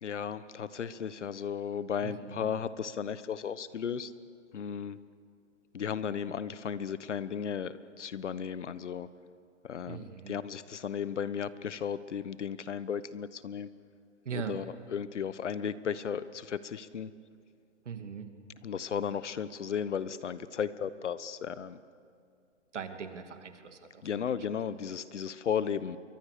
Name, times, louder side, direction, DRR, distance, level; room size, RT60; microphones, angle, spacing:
voice 1, 0.0-4.1 4.5-5.0 5.7-9.1 9.6-13.7 14.5-14.6 14.9-17.1 18.6-21.8 24.0-26.0, left 7 dB, 70° left, 15 dB, 1.3 m, -35 dB
voice 2, 2.0-2.5 9.9-10.4 14.2-14.6 17.8-18.3 22.7-24.5, right 6 dB, 70° right, 7 dB, 2.6 m, -40 dB
28.5 x 23.5 x 6.8 m, 2.3 s
hypercardioid pair, 155°, 37 cm